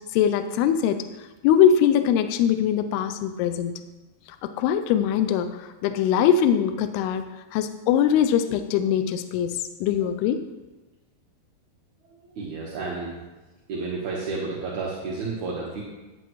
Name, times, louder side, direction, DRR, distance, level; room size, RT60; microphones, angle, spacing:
voice 1, 0.1-1.0 1.4-3.7 4.4-7.2 7.5-10.4, left 8 dB, 85° left, 9 dB, 2.3 m, -22 dB
voice 2, 12.3-13.2 13.7-15.8, right 3 dB, 65° right, -4 dB, 1.9 m, -31 dB
14.5 x 9.2 x 3.1 m, 1.2 s
omnidirectional pair, 5.2 m